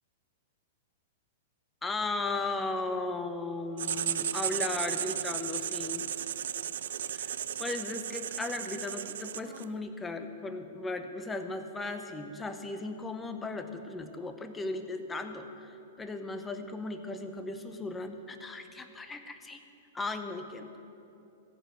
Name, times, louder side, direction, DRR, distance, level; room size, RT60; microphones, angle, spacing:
voice 1, 1.8-6.1 7.1-7.3 7.6-19.6 19.9-20.7, left 3 dB, 10° left, 7 dB, 0.8 m, -36 dB
Writing, 3.8-9.7, right 10 dB, 75° right, 0.3 m, -35 dB
14.5 x 5.2 x 7.8 m, 2.8 s
hypercardioid pair, 125°, 0 cm